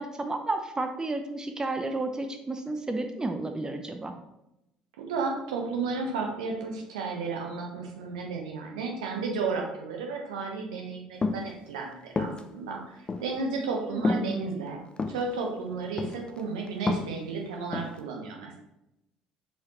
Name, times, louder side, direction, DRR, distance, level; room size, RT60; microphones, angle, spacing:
voice 1, 0.0-4.1 13.9-14.6, right 2 dB, 15° right, 6 dB, 0.7 m, -32 dB
voice 2, 5.0-14.8 15.1-18.6, right 4 dB, 70° right, 1 dB, 1.1 m, -33 dB
sound 1, 11.2-11.5 12.2-12.4 13.1-13.2 14.0-14.3 15.0-15.2 16.0-16.4 16.7-17.2 17.7-18.0, left 3 dB, 25° left, 0.7 m, -28 dB
6.9 x 4.8 x 3.1 m, 0.87 s
figure-of-eight pair, 55°, 4 cm